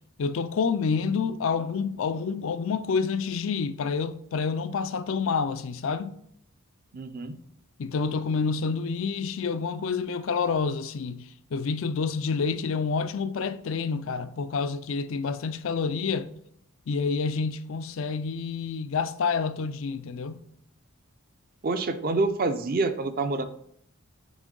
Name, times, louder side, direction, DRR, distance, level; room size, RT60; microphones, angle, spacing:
voice 1, 0.2-6.1 7.8-16.3 16.9-20.4, left 5 dB, 65° left, 0.4 m, -28 dB
voice 2, 6.9-7.3 21.6-23.4, right 3 dB, 40° right, 0.5 m, -27 dB
6.2 x 4.4 x 3.8 m
head